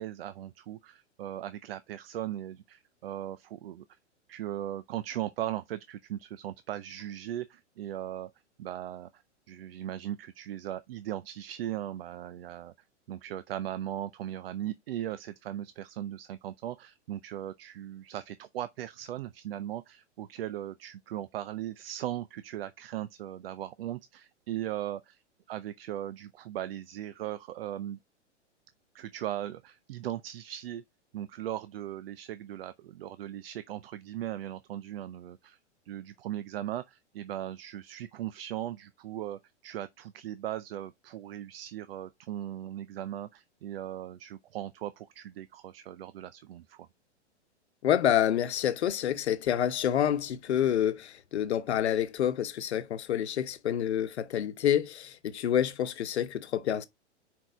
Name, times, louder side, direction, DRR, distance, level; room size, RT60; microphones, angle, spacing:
voice 1, 0.0-3.8 4.3-8.3 8.6-12.7 13.1-25.2 25.5-28.0 28.9-30.8 31.1-35.6 35.9-46.9, right 12 dB, 55° right, 0.6 m, -38 dB
voice 2, 47.8-56.8, left 10 dB, 65° left, 1.1 m, -28 dB
6.2 x 4.7 x 4.8 m
hypercardioid pair, 115°, 36 cm